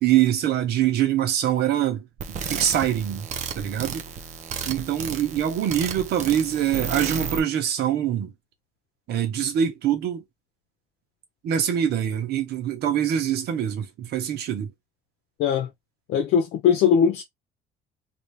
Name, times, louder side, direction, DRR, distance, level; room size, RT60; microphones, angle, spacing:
voice 1, 0.0-3.3 3.5-4.0 4.7-8.3 9.1-10.2 11.4-14.7, right 10 dB, 75° right, 1.3 m, -24 dB
sound 1, 2.2-7.4, right 6 dB, 45° right, 0.7 m, -33 dB
voice 2, 15.4-15.7 16.1-17.2, left 7 dB, 80° left, 0.8 m, -20 dB
2.9 x 2.9 x 3.3 m
cardioid pair, 110°, 17 cm